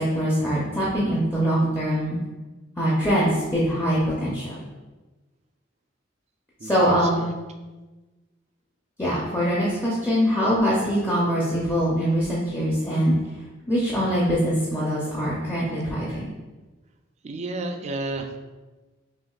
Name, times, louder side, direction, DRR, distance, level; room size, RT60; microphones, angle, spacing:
voice 1, 0.0-2.2 2.8-4.6 6.6-7.3 9.0-13.2 13.7-16.3, equal, 15° left, -7 dB, 0.6 m, -23 dB
voice 2, 6.6-7.3 17.2-18.4, right 2 dB, 35° right, 6 dB, 0.3 m, -32 dB
5.7 x 2.4 x 2.4 m, 1.2 s
head